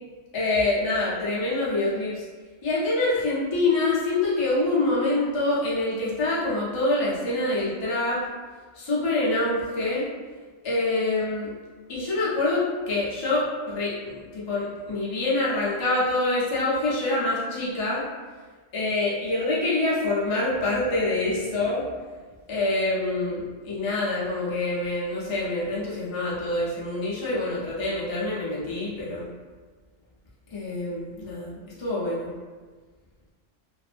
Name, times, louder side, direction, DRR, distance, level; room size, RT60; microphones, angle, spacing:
voice 1, 0.3-2.2 2.6-8.2 8.8-10.1 10.6-11.5 11.9-18.0 18.7-21.8 22.5-29.3 30.5-32.3, left 2 dB, 35° left, -7 dB, 0.5 m, -26 dB
2.5 x 2.5 x 2.5 m, 1.4 s
omnidirectional pair, 1.3 m